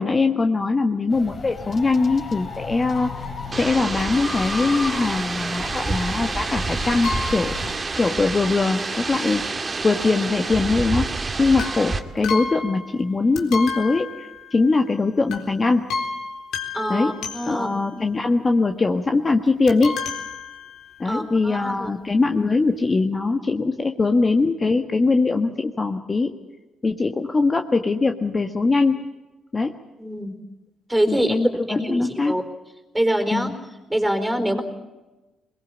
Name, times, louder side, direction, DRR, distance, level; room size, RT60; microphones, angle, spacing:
voice 1, 0.0-3.1 3.5-7.6 7.9-15.8 16.9-17.1 17.5-20.0 21.0-26.3 26.8-29.0 29.5-29.7 31.1-32.4 33.3-33.5, left 3 dB, 30° left, 5 dB, 1.5 m, -22 dB
sound 1, 1.1-7.7, left 3 dB, 45° left, 4.8 m, -34 dB
sound 2, 3.5-12.0, right 3 dB, 30° right, 2.0 m, -28 dB
sound 3, 7.0-7.8 11.6-13.1 13.3-14.8 15.3-15.5 15.9-17.9 19.7-21.1 21.8-21.9 22.1-22.2, left 4 dB, 80° left, 4.0 m, -31 dB
voice 2, 16.7-17.7 21.0-21.9 30.0-30.3 30.9-31.3 31.7-32.4 32.9-33.5 33.9-34.6, right 1 dB, 5° right, 7 dB, 4.4 m, -24 dB
22.0 x 21.5 x 8.6 m, 1.1 s
cardioid pair, 90°, 0 cm